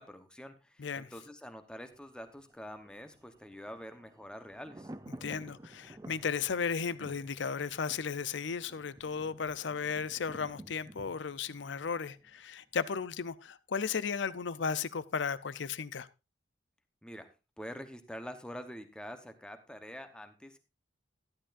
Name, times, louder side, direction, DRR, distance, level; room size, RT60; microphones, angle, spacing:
voice 1, 0.0-4.9 17.0-17.3 17.6-20.6, equal, 5° left, 0.9 m, -46 dB
voice 2, 0.8-1.1 5.1-16.1, left 6 dB, 75° left, 0.6 m, -35 dB
Thunder, 1.8-12.7 13.0-13.1, right 1 dB, 20° right, 0.5 m, -52 dB
12.5 x 11.0 x 2.5 m
head